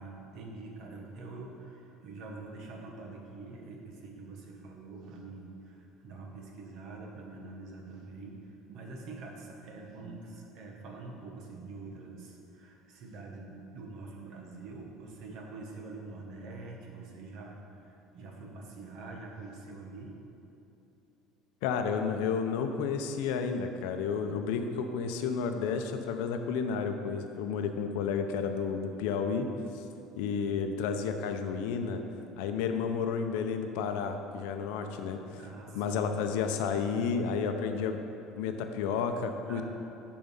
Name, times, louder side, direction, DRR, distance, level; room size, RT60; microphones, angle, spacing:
voice 1, 0.0-20.1 28.9-29.0 35.3-36.0 39.5-39.6, right 3 dB, 50° right, 0 dB, 1.4 m, -45 dB
voice 2, 21.6-29.5 30.2-32.0 32.4-35.2 35.7-38.0 38.4-39.6, left 6 dB, 80° left, 6 dB, 0.7 m, -31 dB
10.5 x 4.7 x 5.6 m, 2.9 s
cardioid pair, 165°, 0 cm